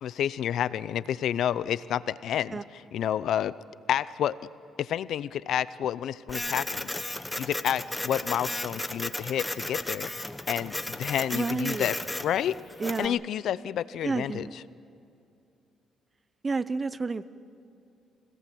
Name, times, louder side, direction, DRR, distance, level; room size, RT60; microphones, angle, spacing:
voice 1, 0.0-2.6 2.9-3.5 3.9-4.4 4.8-12.0 12.2-12.5 13.0-14.5, left 10 dB, 75° left, 17 dB, 0.6 m, -29 dB
Printer, 6.3-13.1, left 1 dB, 10° left, 1.1 m, -34 dB
voice 2, 11.3-12.0 12.8-13.2 14.0-14.6 16.4-17.3, right 4 dB, 30° right, 15 dB, 0.8 m, -30 dB
25.5 x 18.0 x 7.7 m, 2.6 s
cardioid pair, 90°, 0 cm